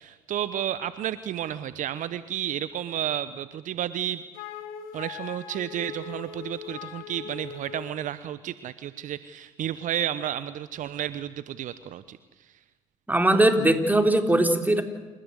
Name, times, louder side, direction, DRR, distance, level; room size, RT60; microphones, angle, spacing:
voice 1, 0.0-4.2 4.9-12.6, right 11 dB, 60° right, 14 dB, 1.0 m, -32 dB
Wind instrument woodwind instrument, 4.3-8.0, left 7 dB, 75° left, 2.4 m, -40 dB
voice 2, 13.1-14.8, right 1 dB, 10° right, 6 dB, 3.8 m, -20 dB
28.5 x 16.0 x 8.1 m, 1.2 s
hypercardioid pair, 60°, 15 cm